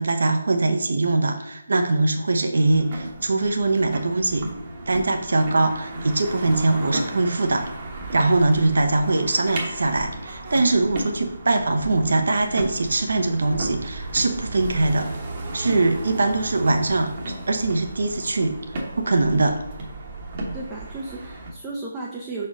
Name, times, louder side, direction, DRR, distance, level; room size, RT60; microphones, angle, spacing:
voice 1, 0.0-4.5 4.9-7.7 8.1-15.1 15.5-17.1 17.5-18.7 19.0-19.6, right 2 dB, 55° right, 5 dB, 0.8 m, -22 dB
sound 1, 2.5-21.5, right 2 dB, 30° right, 1.1 m, -34 dB
voice 2, 20.5-22.5, right 3 dB, 15° right, -3 dB, 0.7 m, -34 dB
5.8 x 4.3 x 3.9 m, 0.80 s
figure-of-eight pair, 145°, 0 cm